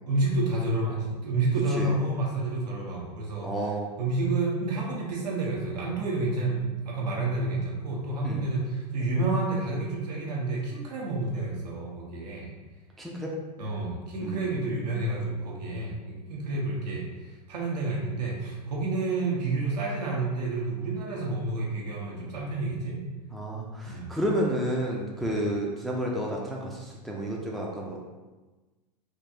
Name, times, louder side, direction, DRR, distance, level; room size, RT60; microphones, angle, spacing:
voice 1, 0.1-3.5 4.0-12.5 13.6-23.0 23.8-24.1 25.2-25.3, right 2 dB, 75° right, -3 dB, 1.0 m, -29 dB
voice 2, 3.4-3.9 8.2-8.4 13.0-13.3 14.2-14.4 23.3-28.1, equal, ahead, -3 dB, 0.4 m, -31 dB
3.7 x 2.5 x 2.8 m, 1.2 s
hypercardioid pair, 100°, 21 cm